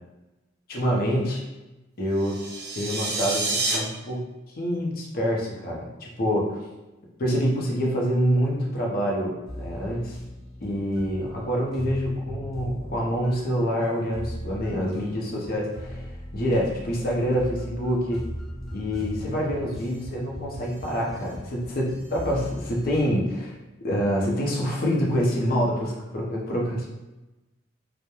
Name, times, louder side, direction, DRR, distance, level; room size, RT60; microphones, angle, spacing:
voice 1, 0.7-1.4 2.0-2.4 2.8-4.2 4.6-6.6 7.2-10.2 10.6-16.1 16.3-18.2 18.7-26.9, equal, 50° left, -2 dB, 0.5 m, -26 dB
sound 1, 2.2-3.8, right 3 dB, 55° right, 0.4 m, -28 dB
sound 2, 9.4-23.1, equal, ahead, 0.5 m, -39 dB
2.9 x 2.1 x 2.2 m, 1.1 s
head